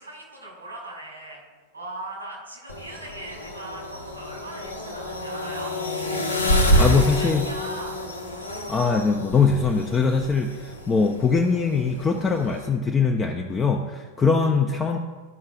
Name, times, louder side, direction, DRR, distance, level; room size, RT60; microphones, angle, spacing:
voice 1, 0.0-1.4 1.7-5.7 6.6-8.0, right 2 dB, 80° right, -2 dB, 2.5 m, -39 dB
sound 1, 2.7-12.7, equal, 85° left, 0.8 m, -28 dB
voice 2, 6.8-7.5 8.7-15.0, left 5 dB, 20° left, 2 dB, 0.5 m, -22 dB
13.0 x 5.5 x 2.4 m, 1.4 s
figure-of-eight pair, 90°, 0 cm